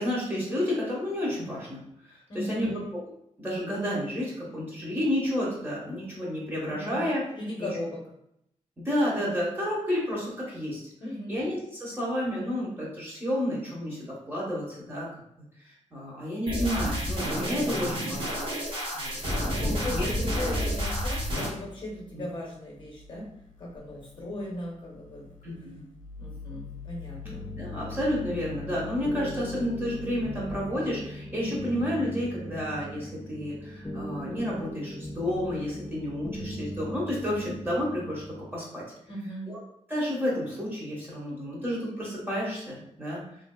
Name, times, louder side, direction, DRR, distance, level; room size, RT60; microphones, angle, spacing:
voice 1, 0.0-2.8 3.4-7.2 7.6-7.7 8.8-10.9 11.3-14.0 14.3-15.1 15.6-18.5 18.9-19.2 19.6-20.1 22.1-22.2 25.4-25.8 27.6-38.2 38.5-38.8 39.5-39.6 39.9-43.2, equal, 15° right, -6 dB, 1.0 m, -31 dB
voice 2, 2.3-2.8 6.7-8.0 11.0-11.3 19.6-23.3 23.6-25.3 26.2-27.4 39.1-39.5, left 1 dB, 40° left, -3 dB, 0.8 m, -37 dB
sound 1, 16.5-21.5, equal, 40° right, 1.1 m, -30 dB
sound 2, 20.6-30.5, left 6 dB, 85° left, 0.4 m, -44 dB
sound 3, 27.2-38.4, equal, 5° left, 0.3 m, -39 dB
3.4 x 2.6 x 2.2 m, 0.74 s
wide cardioid pair, 170°, 13 cm